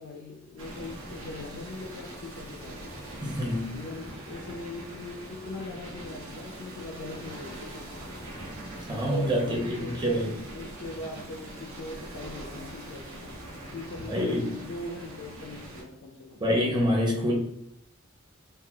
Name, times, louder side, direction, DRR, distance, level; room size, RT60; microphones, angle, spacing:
voice 1, 0.0-2.8 3.7-8.2 9.2-10.2 10.5-13.4 13.7-16.4, left 2 dB, 70° left, 2 dB, 0.4 m, -41 dB
sound 1, 0.6-15.8, right 1 dB, 85° right, 0.8 m, -42 dB
voice 2, 3.2-3.8 8.9-10.3 14.1-14.5 16.4-17.3, equal, 20° right, -2 dB, 0.7 m, -26 dB
3.6 x 2.3 x 2.2 m, 0.78 s
head